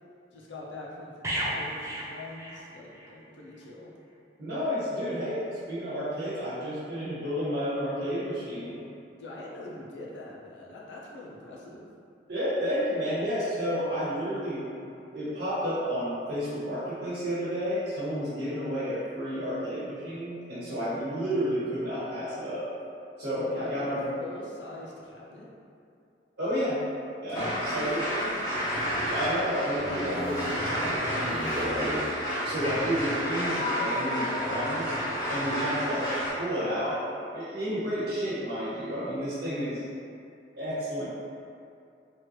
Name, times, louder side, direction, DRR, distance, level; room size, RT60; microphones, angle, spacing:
voice 1, 0.3-3.9 9.2-11.9 23.4-25.5 27.3-28.7, left 2 dB, 80° left, -4 dB, 0.6 m, -43 dB
sound 1, 1.2-3.1 3.4-3.6, right 1 dB, 15° right, 0.4 m, -34 dB
voice 2, 4.4-8.8 12.3-14.7 15.1-22.7 23.2-24.0 26.4-26.8 27.2-28.0 29.1-32.1 32.4-34.8 35.3-37.0 37.3-39.8 40.6-41.1, equal, 70° right, -11 dB, 1.0 m, -31 dB
sound 2, 27.3-36.3, equal, 20° left, 0.7 m, -30 dB
sound 3, 29.8-30.8 31.1-32.2, left 1 dB, 35° right, 1.1 m, -37 dB
3.2 x 2.5 x 2.9 m, 2.5 s
head